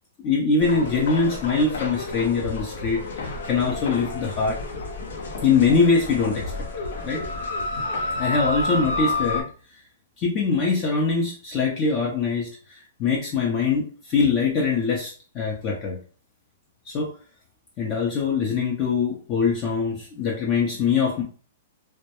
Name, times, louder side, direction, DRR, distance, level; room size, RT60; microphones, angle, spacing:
voice 1, 0.2-4.6 5.4-6.5 7.0-7.2 8.2-9.5 10.2-16.0 16.9-17.1 17.8-21.2, left 5 dB, 30° left, -2 dB, 0.5 m, -23 dB
sound 1, 0.6-9.4, left 2 dB, 80° left, 0.6 m, -30 dB
2.2 x 2.1 x 2.9 m, 0.39 s
hypercardioid pair, 150°, 0 cm